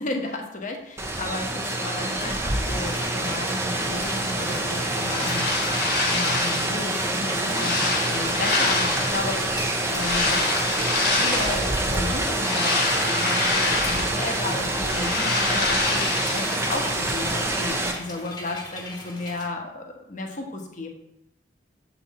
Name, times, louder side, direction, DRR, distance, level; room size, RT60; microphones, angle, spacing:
voice 1, 0.0-5.7 6.0-10.4 10.8-20.9, left 2 dB, 45° left, 2 dB, 1.1 m, -33 dB
Rain, 1.0-17.9, right 1 dB, 15° right, 0.7 m, -26 dB
sound 1, 2.7-19.5, left 2 dB, 25° left, 1.2 m, -40 dB
sound 2, 4.8-6.8 7.2-9.3 9.9-11.7 12.2-14.4 14.7-16.6, left 3 dB, 65° left, 1.5 m, -26 dB
7.0 x 4.1 x 4.1 m, 0.85 s
head